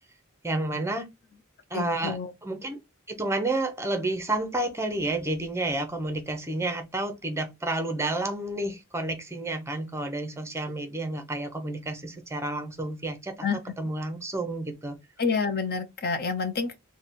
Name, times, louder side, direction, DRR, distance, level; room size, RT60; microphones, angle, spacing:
voice 1, 0.4-1.1 1.7-2.8 3.1-13.5 13.8-15.0, right 2 dB, 15° right, 0.8 m, -30 dB
voice 2, 1.7-2.3 13.4-13.6 15.2-16.8, left 5 dB, 50° left, 0.6 m, -28 dB
3.4 x 2.3 x 4.1 m
head